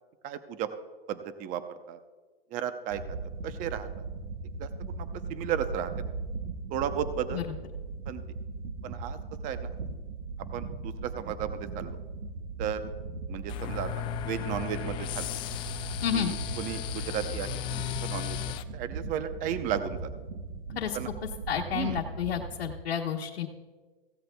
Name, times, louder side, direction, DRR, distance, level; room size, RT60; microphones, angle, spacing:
voice 1, 0.2-0.7 1.1-2.0 2.5-3.0 3.4-3.9 4.6-6.1 6.7-7.4 8.1-8.2 8.8-9.2 9.4-9.7 10.5-12.0 12.6-12.8 13.3-13.9 14.2-15.3 16.1-18.4 18.7-20.1 20.9-21.1 21.7-22.0, right 9 dB, 25° right, 11 dB, 0.7 m, -34 dB
sound 1, 2.9-22.7, right 3 dB, 55° right, 1.0 m, -39 dB
sound 2, 13.5-18.6, left 12 dB, 15° left, 0.3 m, -35 dB
voice 2, 16.0-16.3 20.7-21.0 21.5-23.5, left 8 dB, 75° left, -1 dB, 1.2 m, -30 dB
16.5 x 15.5 x 2.3 m, 1.3 s
hypercardioid pair, 130°, 30 cm